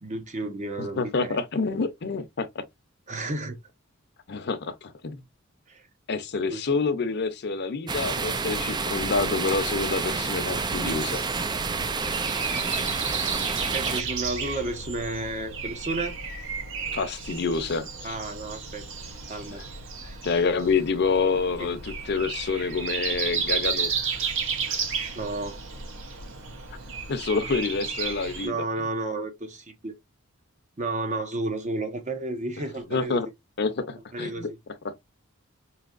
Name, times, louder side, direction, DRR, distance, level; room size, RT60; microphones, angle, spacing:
voice 1, 0.0-1.8 3.1-3.6 5.7-5.9 6.5-6.6 13.7-16.2 18.0-18.9 19.3-19.6 20.0-20.2 21.6-21.7 25.1-25.6 26.8-26.9 28.4-29.9 30.8-33.2 34.1-34.6, right 2 dB, 35° right, 0.8 m, -32 dB
voice 2, 0.8-2.6 4.3-5.2 6.1-11.2 16.9-18.2 20.2-23.9 24.2-24.3 24.7-24.8 27.1-28.7 32.9-33.3 33.6-34.5 34.8-34.9, left 4 dB, 55° left, 0.6 m, -27 dB
sound 1, 7.9-14.0, right 4 dB, 20° right, 0.3 m, -29 dB
Breathing, 10.7-28.5, right 5 dB, 65° right, 1.0 m, -33 dB
4.8 x 2.8 x 2.4 m
head